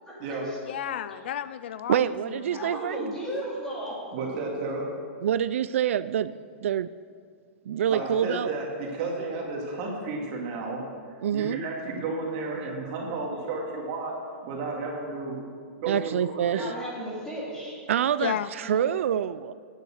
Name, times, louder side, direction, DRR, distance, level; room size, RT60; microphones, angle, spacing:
voice 1, 0.0-0.6 2.5-4.0 16.4-17.8 18.6-18.8, equal, 10° left, -5 dB, 2.4 m, -35 dB
voice 2, 0.7-2.7 3.0-3.1 18.2-18.5, left 10 dB, 60° left, 14 dB, 0.4 m, -33 dB
voice 3, 1.9-3.0 5.2-6.3 6.6-6.9 7.7-8.5 11.2-11.6 15.9-16.7 17.9-19.5, right 9 dB, 85° right, 15 dB, 0.3 m, -26 dB
voice 4, 4.1-4.9 7.9-10.9 11.1-14.2 14.4-15.4 15.8-16.1 16.5-16.6, right 3 dB, 35° right, -1 dB, 2.3 m, -32 dB
9.7 x 9.2 x 6.4 m, 2.1 s
supercardioid pair, 170°, 7 cm